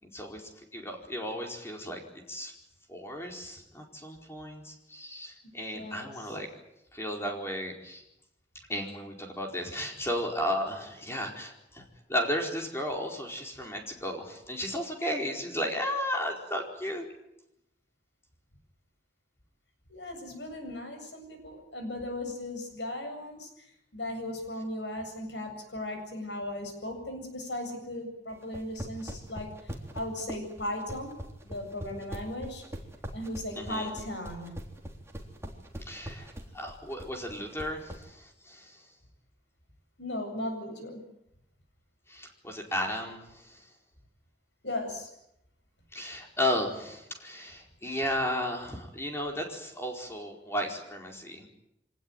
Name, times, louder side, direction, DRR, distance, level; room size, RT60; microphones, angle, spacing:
voice 1, 0.0-2.0 2.3-2.5 2.9-6.5 6.9-8.0 8.7-17.0 33.5-33.9 35.8-36.3 36.5-38.8 42.1-43.6 45.9-51.5, left 1 dB, 15° left, 1 dB, 4.6 m, -34 dB
voice 2, 5.7-6.4 19.9-23.5 23.9-29.5 29.9-31.1 31.4-32.6 33.1-34.5 40.0-41.0 44.6-45.1, left 1 dB, 75° left, 5 dB, 7.9 m, -37 dB
sound 1, 28.4-38.0, equal, 15° right, 3.5 m, -41 dB
25.0 x 19.0 x 9.4 m, 0.82 s
head